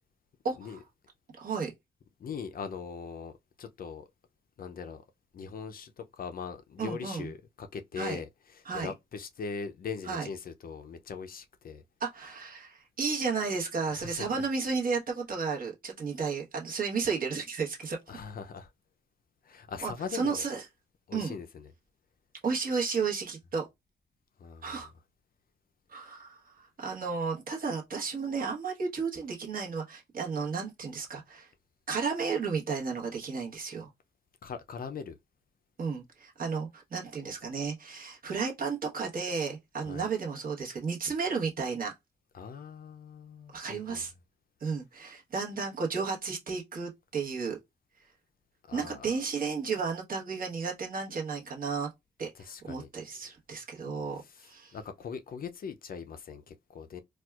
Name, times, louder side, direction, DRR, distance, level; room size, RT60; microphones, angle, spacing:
voice 1, 0.4-0.8 1.4-1.7 6.8-7.3 8.0-8.2 8.7-8.9 10.1-10.3 12.0-18.0 19.8-20.6 21.1-21.4 22.4-23.6 24.6-24.9 25.9-26.4 26.8-31.5 31.9-33.9 35.8-41.9 43.5-44.1 44.6-47.6 48.7-51.9 52.2-54.8, right 5 dB, 50° right, 1.0 m, -33 dB
voice 2, 2.2-3.3 3.6-4.1 4.6-5.0 5.3-11.8 13.9-14.4 18.1-18.7 19.4-20.5 21.1-21.7 24.4-24.9 34.4-35.2 39.8-40.1 42.3-44.0 48.7-49.1 52.3-52.9 54.2-57.0, left 6 dB, 50° left, 0.4 m, -41 dB
4.2 x 2.3 x 2.3 m
wide cardioid pair, 160°, 19 cm